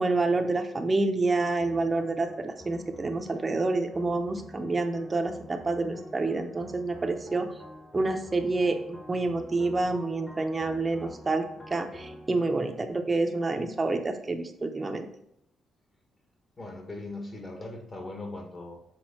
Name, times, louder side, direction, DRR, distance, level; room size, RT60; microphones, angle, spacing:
voice 1, 0.0-7.5 7.9-8.8 9.1-11.4 11.7-15.1, right 3 dB, 25° right, 5 dB, 0.7 m, -28 dB
sound 1, 1.6-14.1, equal, 15° left, 1.2 m, -47 dB
voice 2, 16.6-18.8, left 2 dB, 35° left, 3 dB, 1.5 m, -39 dB
6.2 x 4.1 x 4.3 m, 0.75 s
cardioid pair, 90°, 0 cm